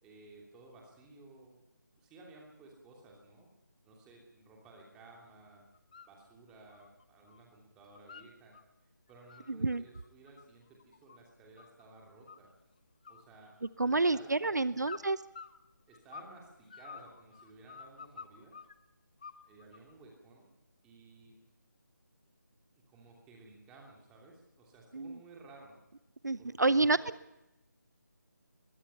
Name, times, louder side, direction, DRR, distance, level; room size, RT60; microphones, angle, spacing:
voice 1, 0.0-1.6 2.0-3.5 3.8-5.6 6.1-8.6 9.1-12.5 13.1-13.5 13.8-15.0 15.9-18.5 19.4-20.5 20.8-21.3 22.9-25.8 26.4-27.4, right 3 dB, 5° right, -1 dB, 2.9 m, -56 dB
sound 1, 5.7-6.1 6.5-7.4 7.7-8.6 9.1-11.8 12.3-12.7 13.0-14.0 14.8-16.4 16.7-18.7 19.2-19.9, left 6 dB, 25° left, 0.8 m, -50 dB
voice 2, 9.5-9.8 13.8-15.2 24.9-25.2 26.2-27.0, right 3 dB, 60° right, 17 dB, 0.7 m, -28 dB
25.0 x 22.0 x 5.6 m, 0.93 s
figure-of-eight pair, 160°, 10 cm